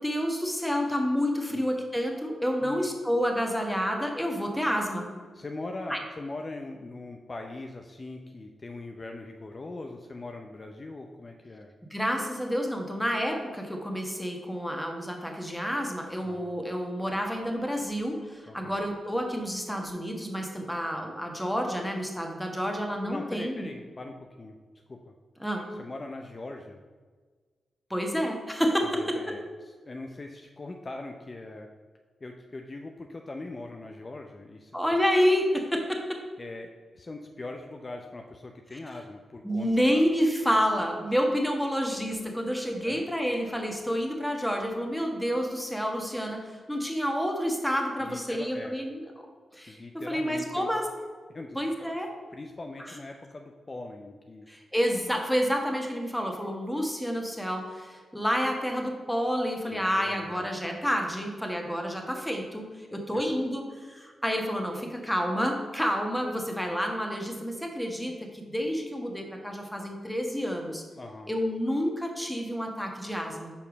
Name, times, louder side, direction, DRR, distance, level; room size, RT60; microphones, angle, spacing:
voice 1, 0.0-5.1 5.9-6.0 11.9-23.7 25.4-25.7 27.9-29.2 34.7-36.2 39.4-49.3 49.5-49.8 50.1-50.9 51.5-52.1 54.5-70.8 71.3-73.5, equal, 5° left, 2 dB, 1.3 m, -29 dB
voice 2, 5.3-11.7 16.2-16.5 18.5-18.8 23.0-24.6 24.9-25.1 25.6-26.8 28.8-31.7 32.2-35.0 36.4-40.1 42.8-43.0 48.0-48.7 49.7-50.7 51.3-51.9 52.3-54.5 59.6-60.4 63.1-63.3 71.0-71.3, left 2 dB, 40° left, 3 dB, 0.5 m, -41 dB
5.3 x 4.6 x 5.1 m, 1.5 s
supercardioid pair, 45°, 0 cm